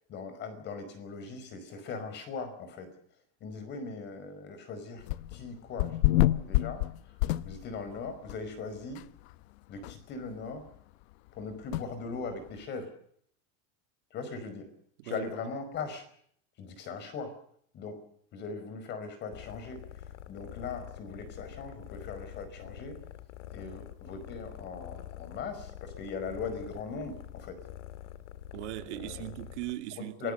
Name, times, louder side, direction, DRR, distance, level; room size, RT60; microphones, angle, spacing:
voice 1, 0.1-2.9 3.4-6.8 7.4-9.0 9.7-10.7 11.3-12.9 14.1-14.7 15.0-16.0 16.6-17.3 17.7-18.0 18.3-19.8 20.3-23.0 23.5-27.6 28.9-29.3 30.0-30.3, left 4 dB, 30° left, 5.0 m, -40 dB
sound 1, 5.0-5.4 5.8-7.9 8.3-8.4 9.0-9.1 9.3-9.4 9.8-9.9 11.7-11.9, left 16 dB, 65° left, 0.9 m, -27 dB
sound 2, 19.3-29.7, left 12 dB, 85° left, 2.1 m, -46 dB
voice 2, 28.5-30.3, right 16 dB, 75° right, 2.7 m, -39 dB
27.5 x 19.5 x 6.7 m
supercardioid pair, 175°, 35 cm